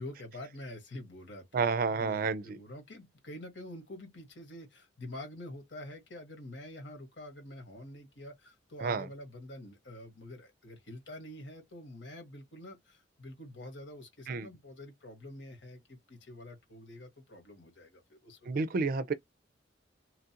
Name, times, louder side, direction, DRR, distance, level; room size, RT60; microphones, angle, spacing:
voice 1, 0.0-19.0, left 1 dB, 80° left, 1.4 m, -47 dB
voice 2, 1.5-2.6 8.8-9.1 14.3-14.5 18.5-19.1, right 4 dB, 50° right, 0.4 m, -30 dB
3.1 x 2.4 x 2.8 m
head